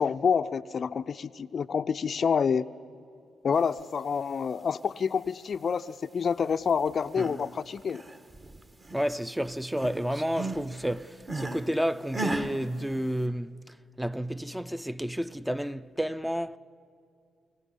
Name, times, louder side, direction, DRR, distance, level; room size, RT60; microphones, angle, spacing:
voice 1, 0.0-2.7 3.4-8.0, left 6 dB, 50° left, 0.5 m, -28 dB
sound 1, 6.9-7.5 7.8-9.2 9.5-11.7 12.1-12.5, right 2 dB, 30° right, 1.6 m, -35 dB
voice 2, 8.9-13.5 14.0-16.6, equal, 5° right, 0.6 m, -30 dB
25.0 x 16.0 x 9.9 m
hypercardioid pair, 40°, 0 cm